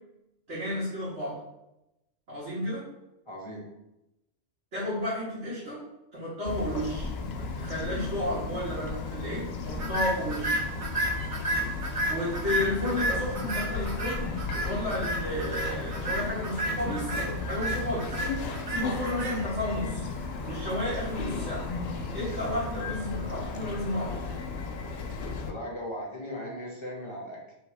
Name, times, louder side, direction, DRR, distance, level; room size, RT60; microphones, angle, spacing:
voice 1, 0.5-1.4 2.3-2.9 4.7-5.8 6.1-7.1 7.4-10.6 12.1-14.3 14.5-17.2 17.5-18.2 18.7-20.1 20.5-21.7 22.1-24.2, left 1 dB, 75° right, -11 dB, 1.9 m, -32 dB
voice 2, 3.3-3.6 25.5-27.5, equal, 30° left, -3 dB, 0.7 m, -38 dB
Bird vocalization bird call bird song, 6.4-25.5, left 4 dB, 65° left, 0.8 m, -35 dB
sound 1, 9.7-24.1, right 1 dB, 45° right, 0.5 m, -34 dB
3.4 x 3.0 x 4.7 m, 0.92 s
omnidirectional pair, 1.2 m